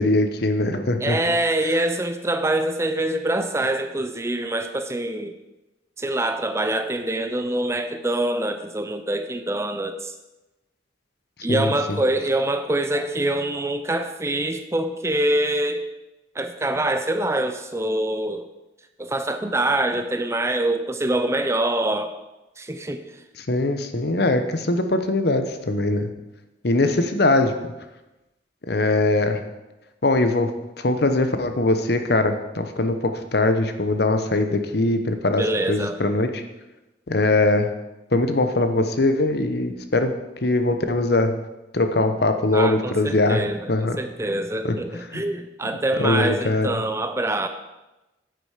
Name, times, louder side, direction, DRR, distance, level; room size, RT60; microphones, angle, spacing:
voice 1, 0.0-1.2 11.5-12.0 23.5-26.1 26.6-27.5 28.7-29.4 30.0-30.5 30.8-35.4 35.7-36.4 37.1-37.7 38.1-40.1 40.4-41.3 41.7-43.4 43.7-44.0 44.6-44.7 45.1-45.2 46.0-46.8, left 2 dB, 60° left, 8 dB, 0.9 m, -21 dB
voice 2, 1.0-5.3 6.0-10.1 11.4-15.8 16.3-18.5 19.0-22.1 22.6-23.0 35.4-36.0 42.5-47.5, right 1 dB, 15° right, 8 dB, 0.6 m, -25 dB
9.9 x 8.0 x 5.0 m, 1.0 s
head